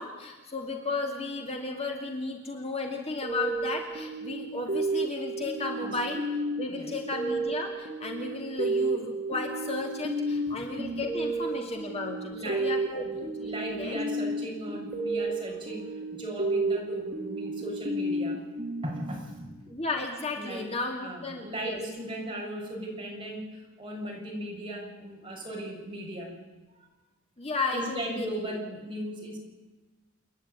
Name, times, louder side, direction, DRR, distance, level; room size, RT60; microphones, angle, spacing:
voice 1, 0.0-6.2 6.6-14.0 19.7-21.8 27.4-28.6, left 3 dB, 30° left, 2 dB, 2.5 m, -34 dB
sound 1, 3.2-19.6, right 2 dB, 45° right, 2.5 m, -32 dB
voice 2, 12.3-12.8 13.0-18.4 18.8-19.5 20.4-20.7 21.0-26.3 27.7-29.4, right 1 dB, 25° right, -2 dB, 7.3 m, -37 dB
29.0 x 10.5 x 9.7 m, 1.2 s
head